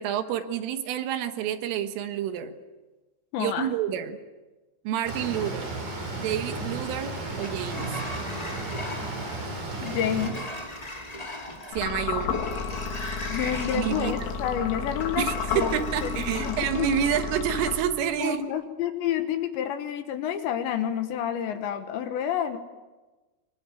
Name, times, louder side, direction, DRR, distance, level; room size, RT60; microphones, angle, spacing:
voice 1, 0.0-2.5 3.4-4.2 4.9-5.7 6.2-7.9 11.7-12.4 13.7-14.1 15.2-18.4, right 9 dB, 75° right, 8 dB, 3.9 m, -28 dB
voice 2, 3.3-3.7 9.8-10.4 13.3-15.3 15.5-15.8 16.0-16.9 18.2-22.6, left 9 dB, 70° left, 8 dB, 3.2 m, -29 dB
sound 1, 5.1-10.3, right 2 dB, 40° right, 7.1 m, -34 dB
Sliding door, 6.7-17.2, left 1 dB, 25° left, 0.8 m, -39 dB
sound 2, 11.7-18.2, left 6 dB, 85° left, 5.3 m, -32 dB
25.5 x 24.0 x 9.0 m, 1.2 s
omnidirectional pair, 6.0 m